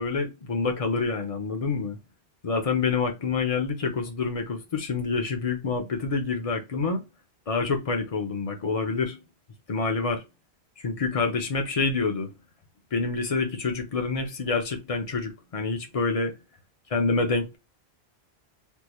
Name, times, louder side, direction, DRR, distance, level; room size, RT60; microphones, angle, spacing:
voice 1, 0.0-2.0 2.4-7.0 7.5-9.2 9.7-10.2 10.8-12.3 12.9-16.3 16.9-17.6, left 4 dB, 40° left, 0.7 m, -27 dB
3.6 x 2.3 x 2.9 m
omnidirectional pair, 1.1 m